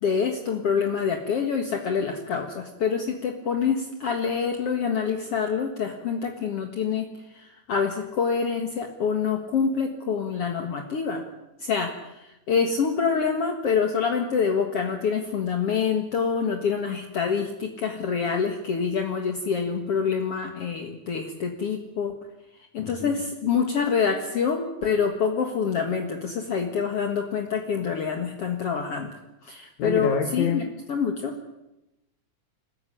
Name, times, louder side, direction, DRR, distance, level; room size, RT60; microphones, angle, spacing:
voice 1, 0.0-11.2 11.6-22.1 22.7-30.6 30.9-31.3, left 6 dB, 55° left, 4 dB, 2.5 m, -26 dB
voice 2, 22.8-23.1 29.8-30.6, left 7 dB, 70° left, 5 dB, 2.9 m, -27 dB
26.0 x 15.5 x 10.0 m, 0.94 s
omnidirectional pair, 3.5 m